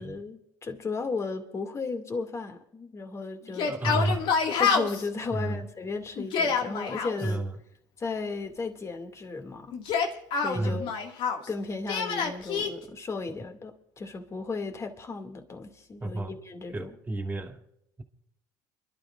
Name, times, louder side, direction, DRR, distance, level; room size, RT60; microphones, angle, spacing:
voice 1, 0.0-3.7 4.6-7.4 8.0-10.2 10.4-10.9 11.5-16.9, left 4 dB, 30° left, 2.4 m, -35 dB
Yell, 3.5-5.1 6.2-7.1 9.7-11.5 11.9-12.7, left 5 dB, 65° left, 2.1 m, -27 dB
voice 2, 3.7-4.3 5.3-5.7 7.2-7.5 10.5-10.9 16.0-16.4 16.7-17.6, right 2 dB, 20° right, 2.6 m, -31 dB
29.5 x 12.5 x 2.5 m
supercardioid pair, 85°, 9 cm